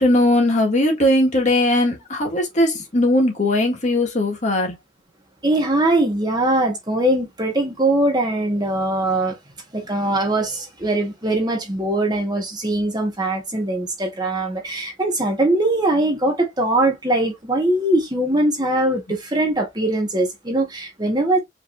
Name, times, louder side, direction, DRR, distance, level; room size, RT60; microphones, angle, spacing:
voice 1, 0.0-4.8, left 1 dB, 45° left, 1.8 m, -19 dB
voice 2, 5.4-9.4 9.7-21.4, right 1 dB, 25° right, 1.5 m, -21 dB
5.1 x 3.5 x 2.6 m
head